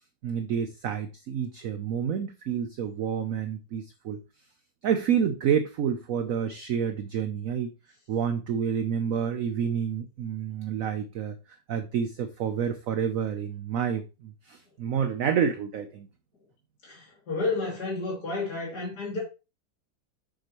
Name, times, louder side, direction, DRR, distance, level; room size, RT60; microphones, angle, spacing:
voice 1, 0.2-4.2 4.8-7.7 8.1-11.4 11.7-16.1, right 8 dB, 65° right, 0.8 m, -29 dB
voice 2, 16.8-19.2, left 3 dB, 60° left, 3.5 m, -31 dB
7.6 x 6.4 x 3.0 m
omnidirectional pair, 2.0 m